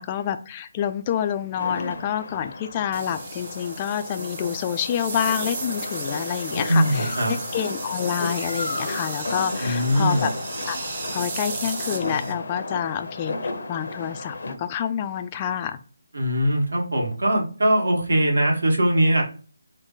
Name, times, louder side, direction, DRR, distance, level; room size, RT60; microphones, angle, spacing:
voice 1, 0.0-10.3 10.6-10.8 11.1-15.8, left 9 dB, 25° left, 9 dB, 0.3 m, -28 dB
sound 1, 1.6-14.5, left 2 dB, 65° left, 0.7 m, -33 dB
sound 2, 2.9-12.3, right 4 dB, 40° right, 0.8 m, -35 dB
Bird, 6.7-11.6, left 2 dB, 85° left, 1.1 m, -38 dB
voice 2, 6.7-7.3 9.6-10.2 16.1-19.2, equal, 75° right, -1 dB, 1.6 m, -21 dB
3.9 x 2.1 x 3.8 m, 0.37 s
figure-of-eight pair, 160°, 0 cm